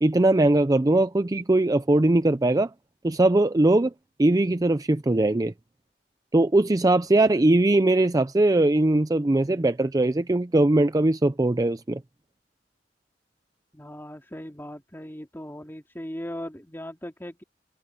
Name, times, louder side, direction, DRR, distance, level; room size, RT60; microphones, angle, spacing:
voice 1, 0.0-2.7 3.0-3.9 4.2-5.5 6.3-12.0, right 2 dB, 20° right, 0.5 m, -20 dB
voice 2, 13.7-17.4, equal, 15° left, 2.4 m, -38 dB
head